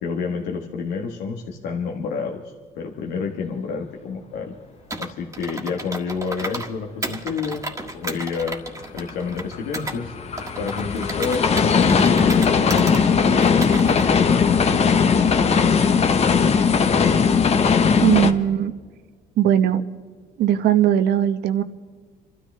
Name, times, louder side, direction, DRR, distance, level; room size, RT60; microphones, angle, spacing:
voice 1, 0.0-4.6 5.0-7.6 7.9-8.6 8.9-10.1 10.6-14.8, left 5 dB, 90° left, 1 dB, 1.4 m, -29 dB
Computer keyboard, 4.9-6.7 7.0-10.0 10.4-13.0 13.4-14.1, right 2 dB, 15° right, 1.7 m, -33 dB
sound 1, 9.0-18.3, left 6 dB, 40° left, 1.0 m, -18 dB
voice 2, 18.0-18.7 19.4-19.8 20.4-21.6, right 10 dB, 75° right, 10 dB, 1.0 m, -19 dB
27.5 x 13.0 x 3.3 m, 1.6 s
cardioid pair, 110°, 17 cm